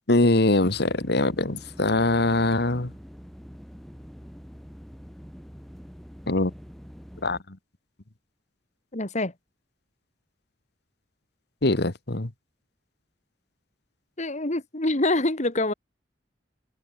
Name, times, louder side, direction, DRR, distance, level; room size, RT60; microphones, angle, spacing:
voice 1, 0.1-2.9 6.3-6.5 7.2-7.6 11.6-12.3, left 2 dB, 65° left, 1.8 m, -23 dB
sound 1, 0.6-7.4, equal, ahead, 4.1 m, -45 dB
voice 2, 8.9-9.3 14.2-15.7, left 2 dB, 40° left, 2.4 m, -25 dB
open air
head